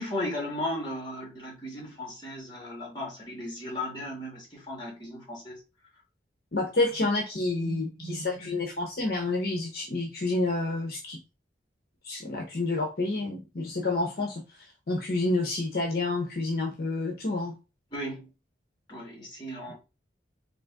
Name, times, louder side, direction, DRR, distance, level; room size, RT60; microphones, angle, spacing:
voice 1, 0.0-5.6 7.6-8.4 17.9-18.3 18.9-19.7, left 1 dB, 25° left, 1.6 m, -36 dB
voice 2, 6.5-11.2 12.0-17.5, left 2 dB, 55° left, 0.7 m, -29 dB
3.8 x 2.5 x 3.5 m
head